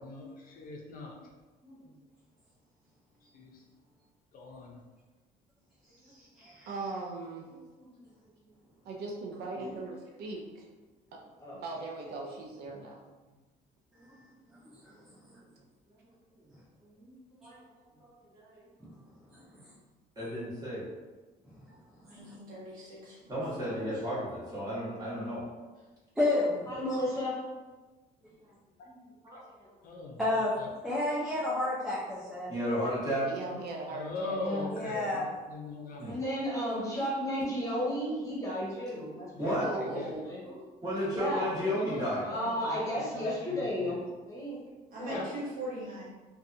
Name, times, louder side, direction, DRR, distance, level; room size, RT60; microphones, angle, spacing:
voice 1, 0.0-1.1 3.3-3.5 4.3-4.8 29.8-30.2 33.9-36.0 39.3-39.6 39.9-40.1 41.3-42.8 43.1-43.9 45.1-45.2, left 3 dB, 55° left, -1 dB, 0.5 m, -41 dB
voice 2, 6.1-6.7 14.8-14.9 18.8-18.9 19.3-19.7 22.0-22.3 26.2-26.6 26.9-27.0 30.2-30.5 30.8-32.5 34.7-35.3, left 2 dB, ahead, -8 dB, 0.5 m, -31 dB
voice 3, 6.7-7.5 8.8-10.7 11.1-11.2 11.6-13.0 33.2-34.7 39.6-40.3, right 3 dB, 75° right, -1 dB, 0.5 m, -39 dB
voice 4, 16.8-17.6 18.0-18.6 20.2-20.8 23.3-25.4 29.2-29.9 32.5-33.3 36.0-36.2 39.4-39.7 40.4-42.3, equal, 20° right, -8 dB, 1.3 m, -34 dB
voice 5, 22.1-24.0 44.9-46.0, right 1 dB, 55° right, -7 dB, 1.2 m, -41 dB
voice 6, 26.7-27.4 33.4-33.7 34.3-34.7 36.0-40.4 41.1-41.5 42.2-44.0 44.3-44.6 44.9-45.2, equal, 20° left, -6 dB, 1.0 m, -34 dB
2.6 x 2.3 x 2.5 m, 1.2 s
cardioid pair, 110°, 17 cm